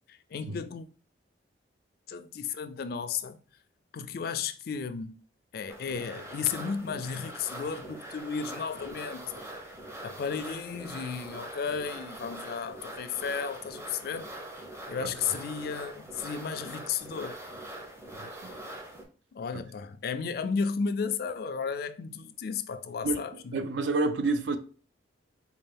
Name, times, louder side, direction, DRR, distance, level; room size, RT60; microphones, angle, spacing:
voice 1, 0.1-0.9 2.1-3.4 3.9-5.2 5.5-9.4 10.0-14.3 14.9-17.4 19.3-23.7, left 6 dB, 55° left, 0.3 m, -34 dB
sound 1, 5.7-19.0, right 1 dB, 15° right, 0.6 m, -43 dB
voice 2, 18.1-18.5 19.5-19.6 23.0-23.2 23.5-24.6, right 3 dB, 80° right, 0.5 m, -29 dB
4.2 x 2.4 x 3.4 m
head